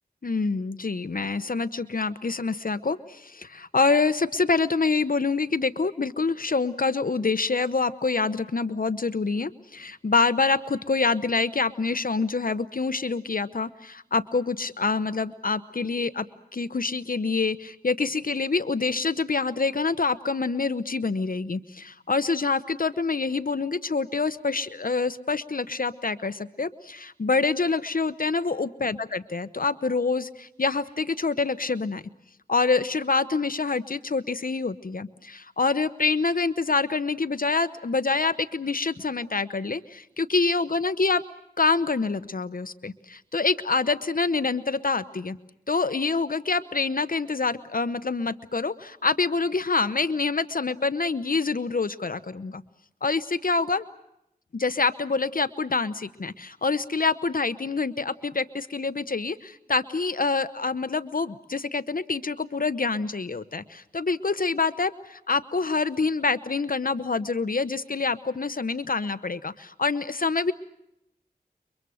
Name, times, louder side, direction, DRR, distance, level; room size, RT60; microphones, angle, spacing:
voice 1, 0.2-16.3 16.5-32.0 32.5-41.2 41.6-45.4 45.7-52.6 53.0-53.9 54.5-70.5, left 4 dB, 60° left, 13 dB, 0.9 m, -26 dB
30.0 x 24.0 x 6.4 m, 0.82 s
wide cardioid pair, 50°, 16 cm